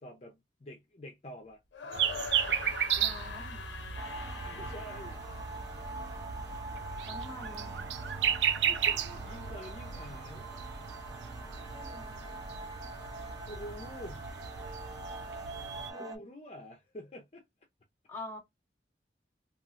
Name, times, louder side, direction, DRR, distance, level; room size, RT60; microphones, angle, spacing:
voice 1, 0.0-2.1 2.5-2.7 4.5-5.2 8.6-10.5 13.5-14.3 16.0-17.4, equal, 35° left, 0.5 m, -47 dB
sound 1, 1.7-5.9, left 4 dB, 90° left, 0.5 m, -43 dB
sound 2, 1.9-15.9, right 8 dB, 80° right, 0.4 m, -35 dB
voice 2, 3.0-3.6 7.1-7.7 11.7-12.2 15.9-16.2 18.1-18.4, left 1 dB, 10° left, 0.8 m, -45 dB
sound 3, 4.0-16.2, right 2 dB, 20° right, 0.6 m, -44 dB
3.0 x 2.4 x 2.4 m
head